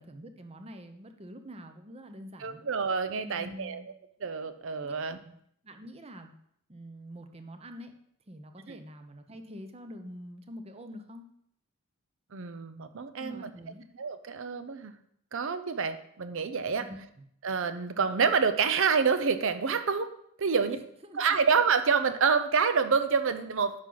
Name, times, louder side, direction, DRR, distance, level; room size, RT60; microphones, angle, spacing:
voice 1, 0.0-2.6 3.2-3.9 4.8-4.9 5.2-5.3 5.6-6.3 6.7-7.9 8.3-11.3 13.2-13.8 16.9-17.0 20.5-21.6, equal, 30° right, 7 dB, 0.7 m, -45 dB
voice 2, 2.4-3.8 4.2-5.2 8.7-8.8 12.3-13.5 14.0-14.9 15.3-16.8 17.4-20.1 20.4-20.8 21.2-23.7, right 5 dB, 60° right, 11 dB, 0.6 m, -27 dB
9.7 x 5.8 x 3.9 m, 0.69 s
head